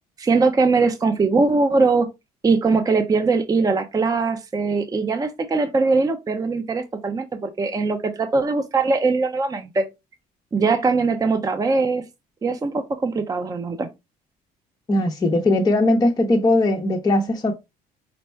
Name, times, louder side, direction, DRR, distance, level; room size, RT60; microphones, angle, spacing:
voice 1, 0.2-2.1 2.4-9.8 10.5-12.1 12.4-13.9, right 4 dB, 20° right, 0.6 m, -21 dB
voice 2, 14.9-17.5, left 2 dB, 20° left, 0.7 m, -19 dB
5.2 x 2.2 x 4.4 m
cardioid pair, 110°, 17 cm